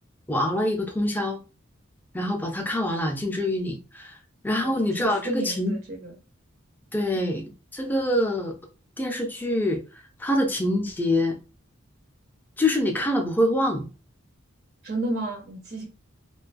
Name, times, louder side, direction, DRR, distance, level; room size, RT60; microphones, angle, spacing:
voice 1, 0.3-1.4 2.1-4.2 4.4-5.8 6.9-7.4 7.7-8.5 9.0-11.4 12.6-13.9, left 1 dB, 10° left, 0.4 m, -25 dB
voice 2, 4.6-6.2 7.1-7.4 14.8-15.9, right 2 dB, 50° right, 0.5 m, -33 dB
2.5 x 2.2 x 2.4 m
head